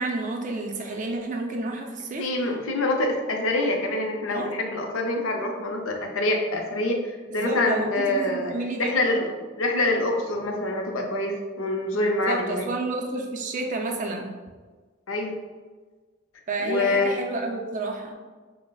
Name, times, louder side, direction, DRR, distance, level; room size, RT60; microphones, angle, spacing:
voice 1, 0.0-2.5 4.3-4.5 7.3-9.1 12.2-14.3 16.5-18.1, right 2 dB, 40° right, 2 dB, 0.4 m, -30 dB
voice 2, 2.2-8.5 8.8-9.3 9.6-12.7 15.1-15.3 16.6-17.1, left 2 dB, 80° left, 2 dB, 0.6 m, -25 dB
5.6 x 2.0 x 2.3 m, 1.4 s
head